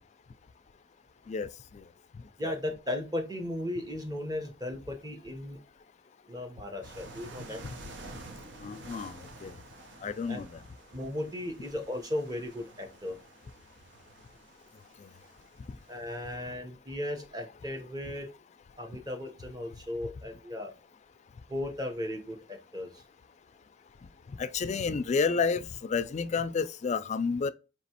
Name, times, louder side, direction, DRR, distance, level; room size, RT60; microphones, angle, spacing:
voice 1, 1.3-1.9 2.4-2.5 8.6-9.6 10.0-10.6 15.0-15.1 24.3-27.5, left 5 dB, 40° left, 0.3 m, -31 dB
voice 2, 2.4-5.6 6.3-7.6 10.3-10.4 10.9-13.2 15.9-18.3 18.8-20.7 21.5-23.0, left 1 dB, 20° right, 0.9 m, -36 dB
sound 1, 6.8-16.4, right 2 dB, 75° right, 0.8 m, -50 dB
4.5 x 3.0 x 2.8 m
head